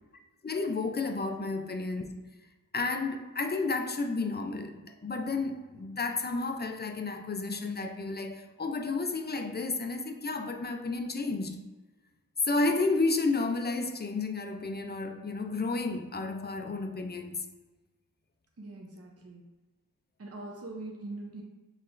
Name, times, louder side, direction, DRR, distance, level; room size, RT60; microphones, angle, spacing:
voice 1, 0.4-2.1 2.7-11.6 12.4-17.4, left 3 dB, 30° left, 0.5 m, -31 dB
voice 2, 18.6-19.4 20.2-21.4, right 2 dB, 40° right, 0.7 m, -42 dB
5.7 x 3.2 x 2.5 m
wide cardioid pair, 60°, 37 cm